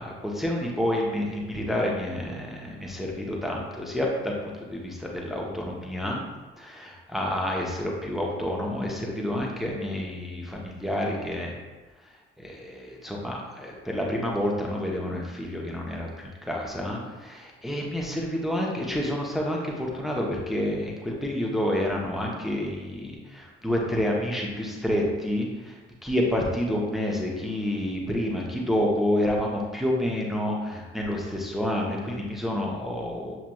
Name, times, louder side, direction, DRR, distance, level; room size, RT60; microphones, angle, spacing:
voice 1, 0.0-4.3 4.7-6.2 6.6-11.5 12.4-25.8 26.0-33.4, left 1 dB, ahead, -2 dB, 0.9 m, -29 dB
7.0 x 3.0 x 2.3 m, 1.2 s
figure-of-eight pair, 45°, 31 cm